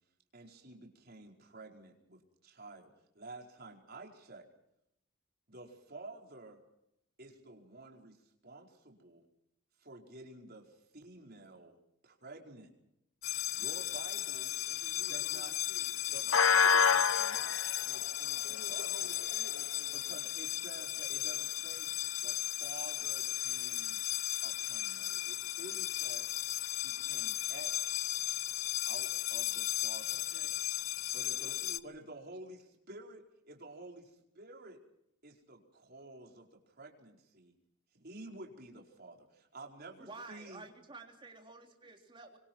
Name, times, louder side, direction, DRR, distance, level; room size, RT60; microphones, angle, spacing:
voice 1, 0.3-4.5 5.5-6.6 7.2-9.2 9.8-11.8 12.0-12.7 13.5-14.5 15.1-15.5 16.1-19.1 19.9-21.9 22.2-24.0 24.4-26.3 26.8-28.0 28.8-30.2 31.1-31.6 31.8-34.8 35.2-37.5 37.9-40.7, right 2 dB, 45° right, 1 dB, 4.8 m, -51 dB
sound 1, 13.2-31.8, left 9 dB, 70° left, 0.9 m, -33 dB
voice 2, 14.6-16.4 18.4-20.2 30.1-30.5 31.4-31.8, right 2 dB, 75° right, -4 dB, 4.3 m, -54 dB
voice 3, 39.8-42.4, right 3 dB, 25° right, 2 dB, 3.6 m, -51 dB
27.0 x 25.0 x 4.6 m, 0.79 s
head